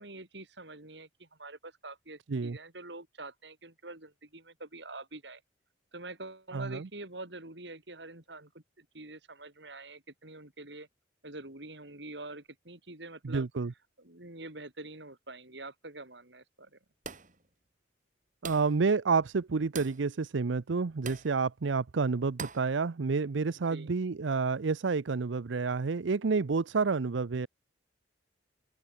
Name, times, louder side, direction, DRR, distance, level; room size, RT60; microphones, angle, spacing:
voice 1, 0.0-5.4 5.9-10.9 11.2-13.5 14.0-16.8 23.7-23.9, right 2 dB, 65° right, 4.7 m, -46 dB
voice 2, 6.5-6.9 13.2-13.7 18.4-27.5, right 4 dB, 85° right, 0.6 m, -29 dB
sound 1, 17.0-17.4 18.4-18.8 19.7-20.0 21.1-21.3 22.4-22.7, right 5 dB, 45° right, 5.4 m, -42 dB
open air
head